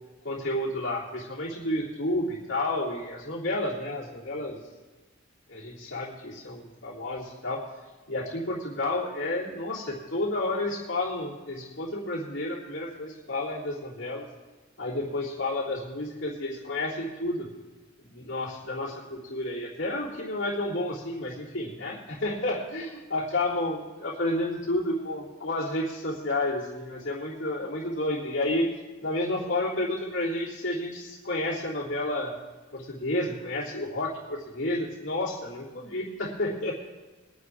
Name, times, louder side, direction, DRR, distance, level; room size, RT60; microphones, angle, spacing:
voice 1, 0.2-4.6 5.5-7.6 8.1-14.3 14.8-17.5 18.0-28.7 29.0-32.3 32.7-36.7, left 1 dB, 70° left, -7 dB, 3.3 m, -31 dB
23.5 x 9.7 x 3.6 m, 1.2 s
head